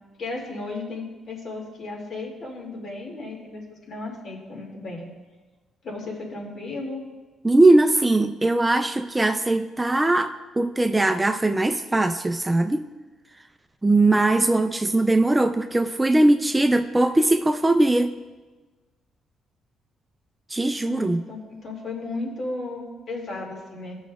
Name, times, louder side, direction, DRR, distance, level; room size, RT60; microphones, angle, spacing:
voice 1, 0.2-5.1 5.8-7.0 20.8-24.0, left 2 dB, 60° left, -1 dB, 2.3 m, -34 dB
voice 2, 7.4-12.8 13.8-18.1 20.5-21.2, right 2 dB, 15° right, 8 dB, 0.4 m, -20 dB
16.5 x 6.2 x 2.4 m, 1.3 s
cardioid pair, 90°, 0 cm